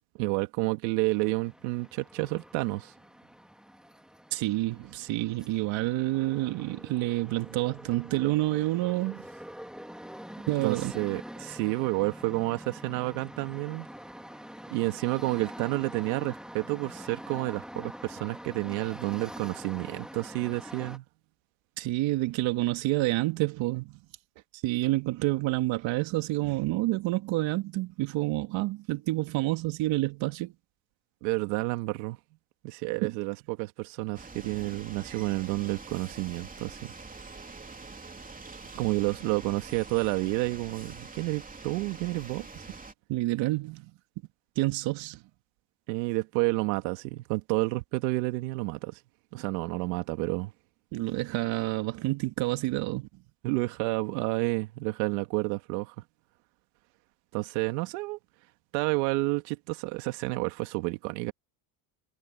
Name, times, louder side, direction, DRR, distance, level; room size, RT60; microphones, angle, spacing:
voice 1, 0.2-2.9 10.6-13.9 14.7-21.0 31.2-32.2 32.6-36.9 38.7-42.7 45.9-49.0 49.3-50.5 53.4-56.0 57.3-58.2 58.7-61.3, right 23 dB, 85° right, 1.9 m, -30 dB
sound 1, 1.1-21.0, equal, ahead, 3.0 m, -45 dB
voice 2, 4.3-9.3 10.5-10.9 21.8-24.0 24.6-30.5 33.0-33.1 43.1-43.9 44.6-45.2 50.9-53.1, right 19 dB, 65° right, 2.1 m, -28 dB
sound 2, 34.1-42.9, right 3 dB, 15° right, 3.1 m, -45 dB
supercardioid pair, 100°, 49 cm